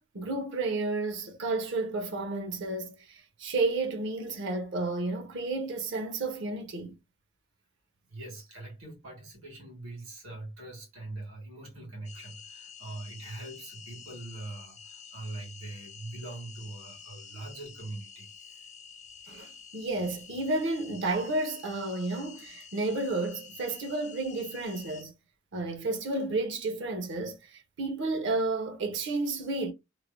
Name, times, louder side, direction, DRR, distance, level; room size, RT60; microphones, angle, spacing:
voice 1, 0.0-6.9 19.3-25.1 25.5-29.7, right 2 dB, 60° right, 0.6 m, -31 dB
voice 2, 8.0-18.6, right 2 dB, 85° right, 1.6 m, -43 dB
sound 1, 12.0-25.0, left 6 dB, 35° left, 0.4 m, -49 dB
3.1 x 2.0 x 2.4 m
head